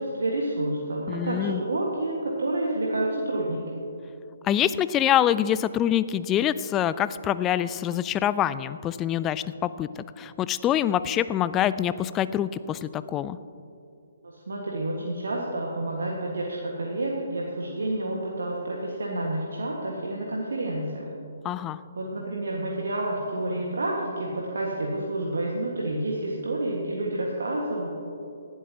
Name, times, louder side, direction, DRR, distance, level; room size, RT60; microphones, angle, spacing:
voice 1, 0.0-3.7 14.5-21.1 21.9-27.9, right 1 dB, 70° right, -2 dB, 1.5 m, -29 dB
voice 2, 1.1-1.6 4.4-13.4 21.4-21.8, left 11 dB, 20° left, 15 dB, 0.3 m, -25 dB
18.5 x 12.0 x 2.8 m, 2.7 s
figure-of-eight pair, 135°, 0 cm